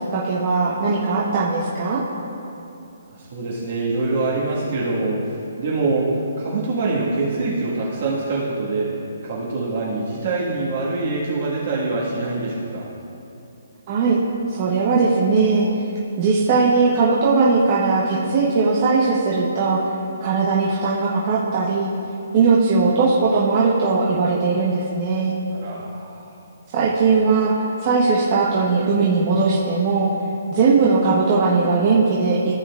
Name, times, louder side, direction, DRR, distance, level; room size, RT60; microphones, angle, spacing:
voice 1, 0.1-2.0 13.9-14.2 14.5-15.7 16.2-19.8 20.2-21.9 22.3-25.3 26.7-27.5 27.8-30.1 30.5-32.4, right 4 dB, 25° right, -6 dB, 0.8 m, -19 dB
voice 2, 3.1-8.9 9.2-12.9 25.5-26.2, right 3 dB, 45° right, -6 dB, 1.5 m, -24 dB
14.5 x 6.9 x 2.4 m, 2.8 s
hypercardioid pair, 175°, 0 cm